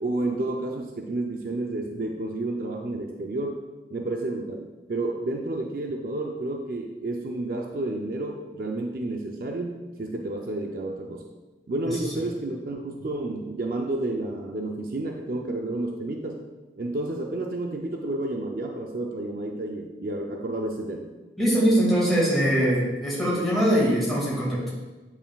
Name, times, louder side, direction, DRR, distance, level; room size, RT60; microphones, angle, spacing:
voice 1, 0.0-3.6 3.9-11.3 11.7-16.4 16.8-21.1 24.3-24.4, right 2 dB, 50° right, 2 dB, 0.5 m, -30 dB
voice 2, 21.4-24.6, equal, ahead, -7 dB, 2.0 m, -22 dB
8.6 x 5.6 x 2.3 m, 1.2 s
head